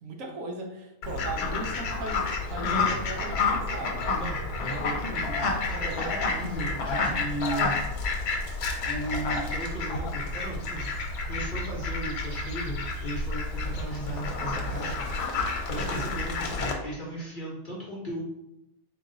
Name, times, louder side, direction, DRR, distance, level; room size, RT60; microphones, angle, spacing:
voice 1, 0.0-4.1 15.7-16.2, right 2 dB, 65° right, 2 dB, 0.9 m, -38 dB
Fowl, 1.0-16.7, left 3 dB, 85° left, 1.2 m, -30 dB
voice 2, 4.1-7.8 8.8-15.0 15.7-18.2, right 1 dB, 45° left, -4 dB, 0.7 m, -36 dB
3.8 x 2.4 x 3.8 m, 0.90 s
omnidirectional pair, 1.6 m